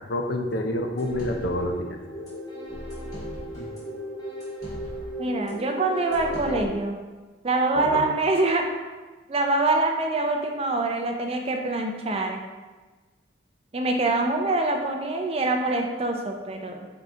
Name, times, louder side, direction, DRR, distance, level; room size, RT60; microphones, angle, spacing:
voice 1, 0.1-2.0 7.7-8.0, left 1 dB, 60° left, 4 dB, 0.5 m, -28 dB
sound 1, 1.0-6.7, equal, 20° left, 1.4 m, -36 dB
voice 2, 5.2-7.0 7.4-8.7 9.3-12.4 13.7-16.9, right 2 dB, 30° right, 3 dB, 0.4 m, -25 dB
3.9 x 3.4 x 3.7 m, 1.3 s
head